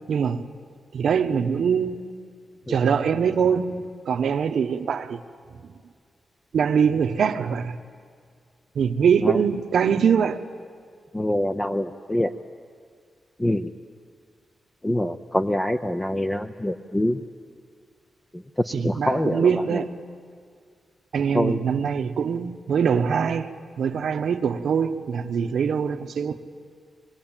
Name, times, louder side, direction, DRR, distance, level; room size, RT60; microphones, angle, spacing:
voice 1, 0.1-0.5 0.9-2.0 2.7-5.2 6.5-7.8 8.7-10.4 18.7-20.0 21.1-23.5 23.8-26.4, right 7 dB, 75° right, 1.0 m, -23 dB
voice 2, 11.1-12.3 13.4-13.7 14.8-17.2 18.3-19.8 21.3-21.6, left 1 dB, 10° left, 0.6 m, -25 dB
25.5 x 21.0 x 8.9 m
wide cardioid pair, 155°, 0 cm